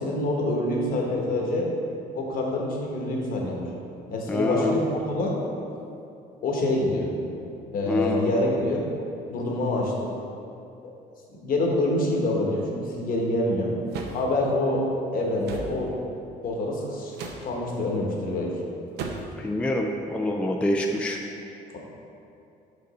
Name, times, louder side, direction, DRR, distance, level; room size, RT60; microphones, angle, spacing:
voice 1, 0.0-1.7 2.1-3.7 4.1-5.4 6.4-7.1 7.7-8.9 9.3-10.1 11.4-13.7 14.1-14.9 15.1-15.9 16.4-18.5 21.7-21.8, left 1 dB, 60° left, -1 dB, 1.2 m, -26 dB
voice 2, 4.3-4.7 7.9-8.4 19.4-21.2, left 1 dB, 5° left, 1 dB, 0.3 m, -26 dB
sound 1, 13.9-14.2 15.4-15.7 17.1-17.5 19.0-19.4, right 3 dB, 75° right, 0.7 m, -35 dB
5.3 x 5.2 x 4.1 m, 2.6 s
cardioid pair, 110°, 17 cm